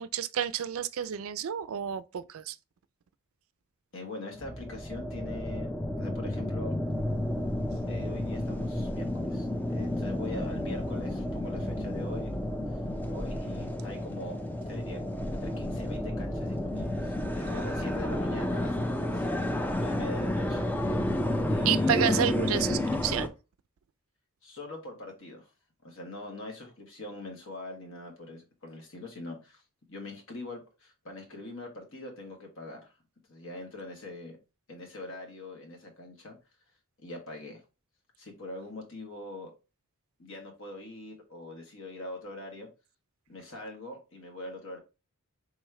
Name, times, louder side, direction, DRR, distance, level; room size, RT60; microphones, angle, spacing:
voice 1, 0.0-2.6 17.3-17.6 21.7-23.3, right 9 dB, 70° right, 0.4 m, -30 dB
voice 2, 3.9-6.7 7.9-12.3 12.7-14.4 14.7-15.0 15.3-20.6 21.5-22.0 24.4-25.5 25.8-29.6 29.9-32.9 33.3-34.4 34.7-36.4 37.0-37.6 38.2-39.5 40.2-42.7 43.3-44.8, left 2 dB, 65° left, 1.5 m, -43 dB
sound 1, 4.3-23.3, left 1 dB, 10° left, 0.4 m, -31 dB
3.6 x 3.1 x 4.6 m
head